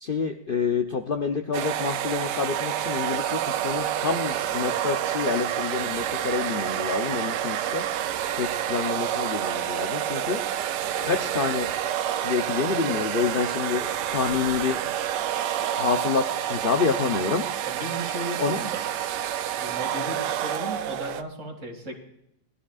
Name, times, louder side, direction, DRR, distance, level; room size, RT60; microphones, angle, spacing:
voice 1, 0.0-7.8 8.4-10.4 11.0-11.7 12.2-14.8 15.7-17.4 18.4-18.6, left 5 dB, 80° left, 4 dB, 0.4 m, -28 dB
sound 1, 1.5-21.2, right 11 dB, 70° right, 1.1 m, -28 dB
voice 2, 17.6-18.9 19.6-21.9, right 1 dB, 40° right, 1 dB, 2.5 m, -35 dB
19.5 x 12.5 x 2.4 m, 0.76 s
omnidirectional pair, 2.0 m